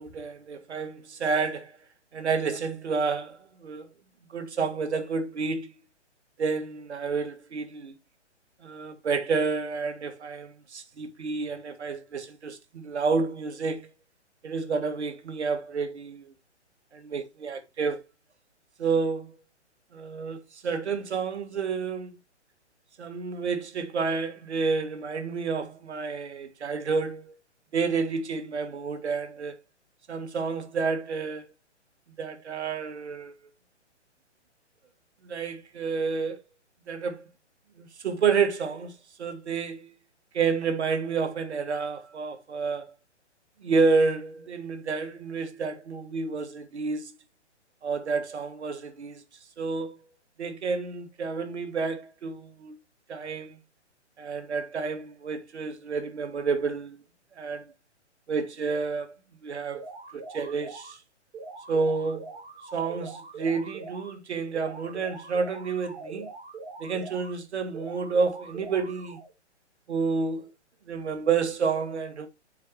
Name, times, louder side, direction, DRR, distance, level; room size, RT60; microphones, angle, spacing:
voice 1, 0.0-1.8 2.1-3.9 4.3-5.7 6.4-7.9 8.6-13.9 14.4-16.3 16.9-18.1 18.8-19.4 19.9-22.2 23.0-27.4 27.7-29.6 30.1-31.4 32.2-33.3 35.2-36.4 36.9-37.2 37.8-38.9 39.2-39.9 40.3-42.9 43.6-47.1 47.8-49.2 49.6-50.0 50.4-52.8 53.1-53.6 54.2-57.0 57.4-57.7 58.3-59.1 59.4-59.8 60.1-61.0 61.7-62.4 62.7-66.3 66.8-69.2 69.9-70.5 70.9-72.3, right 5 dB, 65° right, 1.8 m, -29 dB
sound 1, 59.7-60.9 61.3-64.1 64.5-67.3 67.7-69.3, right 3 dB, 15° right, 2.1 m, -42 dB
7.3 x 5.2 x 3.0 m
hypercardioid pair, 135°, 36 cm